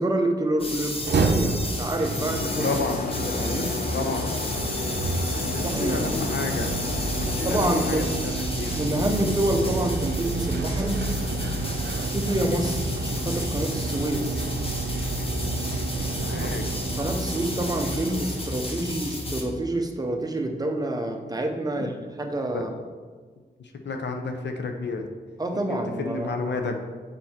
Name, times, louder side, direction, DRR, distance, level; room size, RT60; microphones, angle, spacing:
voice 1, 0.0-2.7 3.2-3.8 5.6-6.3 7.4-8.1 8.7-11.1 12.0-14.4 17.0-22.7 25.4-26.3, right 1 dB, 20° right, 3 dB, 0.8 m, -27 dB
sound 1, 0.6-19.4, left 1 dB, 30° left, 1.1 m, -32 dB
sound 2, 0.9-19.0, right 3 dB, 70° right, 0.7 m, -30 dB
sound 3, 1.9-8.8, left 5 dB, 55° left, 0.5 m, -33 dB
voice 2, 2.6-3.0 3.9-4.3 5.3-6.7 7.2-8.8 16.2-16.6 21.7-21.8 22.5-22.6 23.6-25.1 25.7-26.8, left 3 dB, 75° left, 4 dB, 0.8 m, -31 dB
6.5 x 5.6 x 4.4 m, 1.5 s
wide cardioid pair, 110°, 18 cm